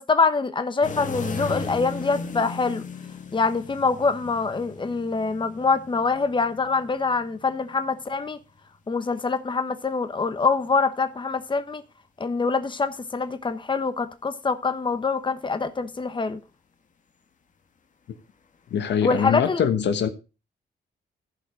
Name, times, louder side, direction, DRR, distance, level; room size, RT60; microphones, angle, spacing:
voice 1, 0.0-2.9 3.3-8.4 8.9-11.8 12.2-16.4 19.0-19.6, left 4 dB, 25° left, 1.1 m, -25 dB
sound 1, 0.8-8.6 10.2-10.6 19.0-19.1, left 4 dB, 45° left, 1.4 m, -37 dB
voice 2, 18.7-20.1, left 8 dB, 75° left, 1.2 m, -23 dB
14.5 x 5.5 x 4.9 m
cardioid pair, 85°, 18 cm